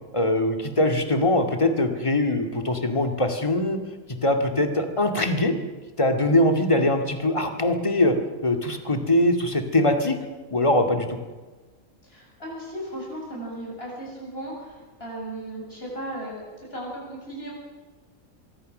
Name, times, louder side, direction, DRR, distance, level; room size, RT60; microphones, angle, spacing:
voice 1, 0.1-3.8 4.2-5.5 6.0-8.2 8.4-10.2 10.5-11.2, left 1 dB, 25° left, 5 dB, 2.2 m, -22 dB
voice 2, 12.0-17.5, right 1 dB, 45° left, -3 dB, 7.8 m, -36 dB
24.5 x 23.0 x 6.6 m, 1.3 s
omnidirectional pair, 1.4 m